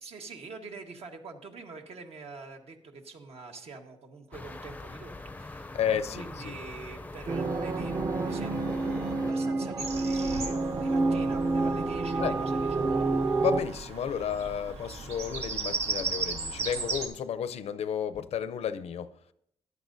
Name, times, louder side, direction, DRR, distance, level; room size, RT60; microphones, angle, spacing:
voice 1, 0.0-12.6, right 4 dB, 75° right, 1.3 m, -45 dB
sound 1, 4.3-9.3, left 2 dB, 15° left, 0.4 m, -43 dB
voice 2, 5.7-6.6 12.2-12.3 13.4-19.1, left 8 dB, 80° left, 0.5 m, -32 dB
sound 2, 7.3-13.6, right 3 dB, 35° right, 0.6 m, -28 dB
Bird vocalization bird call bird song, 9.8-17.1, right 3 dB, 90° right, 1.3 m, -36 dB
14.5 x 11.0 x 2.6 m
wide cardioid pair, 120°, 11 cm